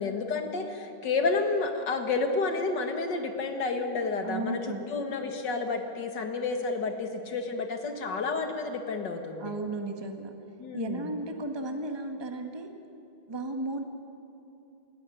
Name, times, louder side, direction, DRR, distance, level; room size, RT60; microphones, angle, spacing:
voice 1, 0.0-9.5 10.6-11.1, left 4 dB, 40° left, 5 dB, 1.9 m, -30 dB
voice 2, 4.2-4.8 9.4-10.3 10.7-12.7 13.3-13.8, right 2 dB, 20° right, 4 dB, 0.7 m, -34 dB
26.0 x 14.0 x 9.9 m, 2.8 s
omnidirectional pair, 3.4 m